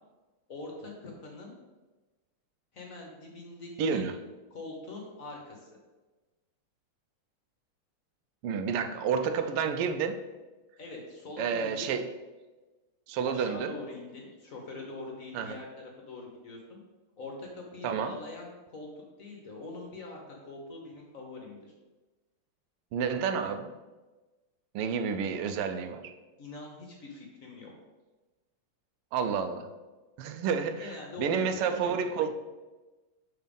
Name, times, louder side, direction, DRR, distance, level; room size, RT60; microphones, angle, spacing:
voice 1, 0.5-1.5 2.7-4.0 4.5-5.7 10.8-11.9 13.2-16.8 17.2-18.9 19.2-21.7 26.4-27.7 30.8-31.9, left 2 dB, 50° left, 0 dB, 1.2 m, -43 dB
voice 2, 3.8-4.2 8.4-10.2 11.4-12.0 13.1-13.7 15.3-15.6 17.8-18.1 22.9-23.7 24.7-26.1 29.1-29.7 30.2-32.3, right 6 dB, 90° right, 8 dB, 1.6 m, -30 dB
6.7 x 4.0 x 5.3 m, 1.2 s
omnidirectional pair, 2.4 m